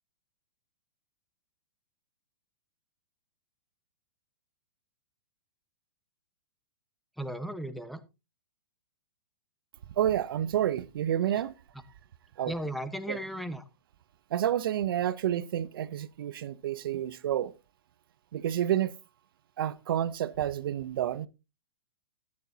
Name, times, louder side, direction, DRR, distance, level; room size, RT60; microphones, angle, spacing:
voice 1, 7.2-8.0 12.5-13.6, right 1 dB, ahead, 1.1 m, -35 dB
voice 2, 10.0-11.5 12.4-12.5 13.1-13.2 14.3-17.5 18.3-18.9 19.6-21.3, right 11 dB, 65° right, 0.7 m, -29 dB
13.5 x 10.5 x 2.8 m
hypercardioid pair, 120°, 13 cm